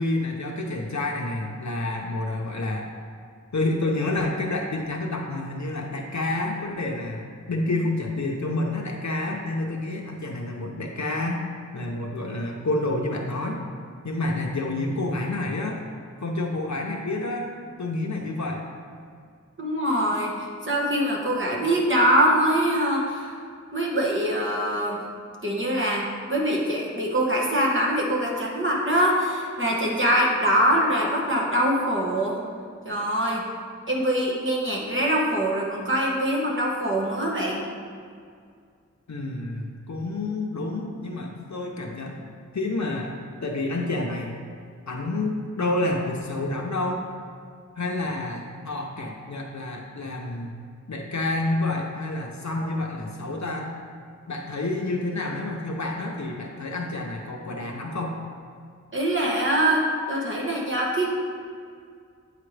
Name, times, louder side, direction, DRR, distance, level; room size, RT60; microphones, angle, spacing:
voice 1, 0.0-2.9 3.5-11.5 11.7-13.6 14.0-15.8 16.2-17.5 17.8-18.7 39.1-42.2 42.5-44.4 44.9-47.0 47.8-50.5 50.9-53.7 54.3-58.2, left 2 dB, 70° left, 0 dB, 0.7 m, -29 dB
voice 2, 19.6-23.3 23.7-25.0 25.4-32.4 32.8-33.4 33.9-37.6 52.5-52.7 58.9-61.1, right 1 dB, 40° right, -3 dB, 1.3 m, -23 dB
8.5 x 4.9 x 3.3 m, 2.2 s
wide cardioid pair, 45°, 29 cm